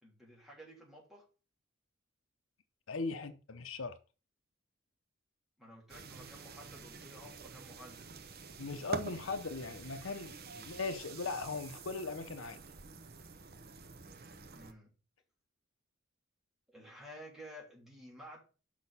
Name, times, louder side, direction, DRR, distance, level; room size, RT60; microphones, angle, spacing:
voice 1, 0.0-1.2 5.6-8.1 14.5-14.9 16.7-18.4, equal, ahead, 3.2 m, -53 dB
voice 2, 2.9-4.0 8.6-12.6, left 4 dB, 80° left, 0.8 m, -39 dB
sound 1, 5.9-14.7, right 4 dB, 50° right, 0.9 m, -48 dB
6.3 x 5.9 x 5.6 m
head